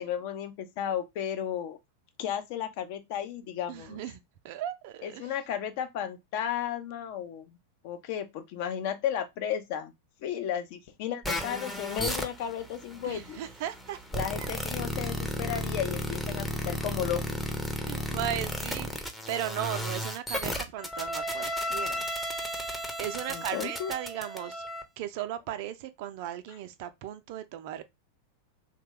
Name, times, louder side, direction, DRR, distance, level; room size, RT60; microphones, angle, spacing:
voice 1, 0.0-1.8 2.2-4.0 5.0-7.6 7.8-9.9 10.2-13.4 14.1-17.4 23.3-23.9, left 9 dB, 50° left, 0.5 m, -34 dB
voice 2, 3.7-5.3 13.0-14.0 14.4-14.8 17.8-22.1 22.6-24.6 25.0-27.8, right 11 dB, 50° right, 0.4 m, -37 dB
sound 1, 11.2-24.8, equal, 5° left, 0.6 m, -34 dB
2.9 x 2.2 x 3.2 m
figure-of-eight pair, 90°, 0 cm